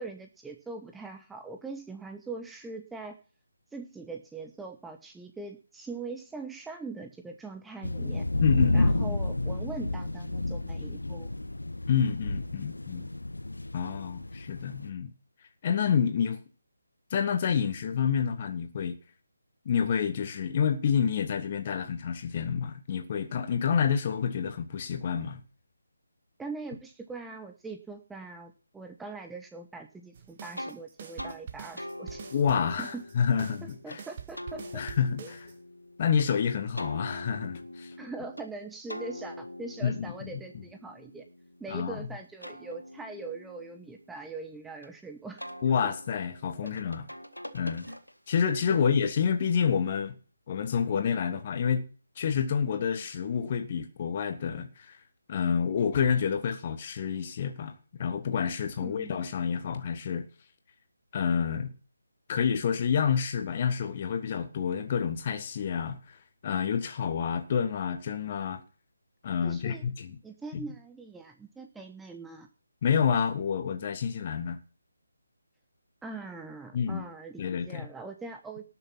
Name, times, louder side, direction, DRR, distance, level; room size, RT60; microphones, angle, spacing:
voice 1, 0.0-3.2 3.7-8.3 8.7-11.3 26.4-32.2 32.8-33.0 33.6-34.8 35.2-35.3 38.0-41.3 41.6-45.5 45.8-45.9 48.7-48.9 58.8-59.2 69.4-69.8 70.2-72.5 76.0-78.6, right 3 dB, 5° right, 0.7 m, -42 dB
sound 1, 7.8-14.9, left 2 dB, 70° left, 1.3 m, -30 dB
voice 2, 8.4-9.2 11.9-13.1 13.7-15.1 15.6-16.4 17.1-19.0 19.6-25.4 32.3-34.0 34.7-35.5 36.0-37.9 39.8-40.4 41.7-42.1 45.6-47.0 47.5-47.9 48.3-50.2 50.5-51.9 52.2-55.0 55.3-60.2 61.1-61.7 62.3-66.0 66.4-68.6 69.2-70.2 70.5-70.6 72.8-74.6 76.7-77.0 77.4-77.9, left 7 dB, 30° left, 1.5 m, -28 dB
sound 2, 30.1-35.5, right 7 dB, 30° right, 1.6 m, -45 dB
sound 3, 30.6-30.8 31.2-31.4 31.8-34.0 34.3-36.3 36.8-38.5 38.9-41.8 42.2-44.9 45.4-48.4, left 1 dB, 85° left, 2.0 m, -44 dB
18.5 x 6.9 x 5.8 m
figure-of-eight pair, 150°, 0 cm